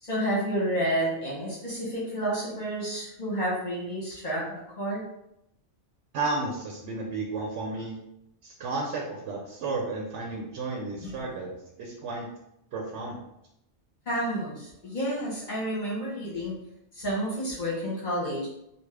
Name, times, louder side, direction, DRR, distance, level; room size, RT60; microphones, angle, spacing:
voice 1, 0.0-4.4 4.8-5.0 11.0-11.1 14.1-16.5 16.9-18.5, right 1 dB, 45° left, -5 dB, 1.0 m, -30 dB
voice 2, 6.1-7.9 8.4-12.3 12.7-13.2, right 3 dB, 80° right, 0 dB, 0.9 m, -33 dB
3.5 x 2.3 x 3.2 m, 0.81 s
omnidirectional pair, 1.2 m